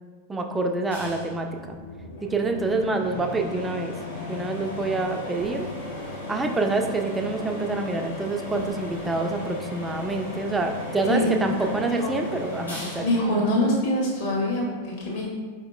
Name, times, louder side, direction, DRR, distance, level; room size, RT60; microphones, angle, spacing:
voice 1, 0.3-1.8 2.3-4.0 4.3-5.7 6.3-13.0, right 3 dB, 10° right, 3 dB, 0.3 m, -27 dB
sound 1, 0.9-14.4, left 2 dB, 85° left, 1.2 m, -36 dB
voice 2, 11.6-12.1 13.0-15.3, left 1 dB, 55° left, -5 dB, 1.3 m, -25 dB
4.6 x 2.9 x 2.2 m, 1.5 s
figure-of-eight pair, 90°, 0 cm